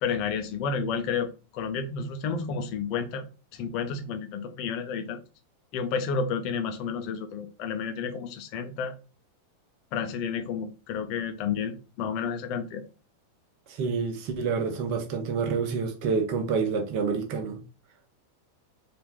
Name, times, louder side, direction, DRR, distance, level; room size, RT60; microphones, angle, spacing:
voice 1, 0.0-3.2 3.5-5.2 5.7-8.9 9.9-12.8, left 6 dB, 40° left, 0.9 m, -31 dB
voice 2, 13.7-17.6, right 5 dB, 45° right, 1.1 m, -28 dB
4.5 x 2.9 x 3.6 m
figure-of-eight pair, 90°, 0 cm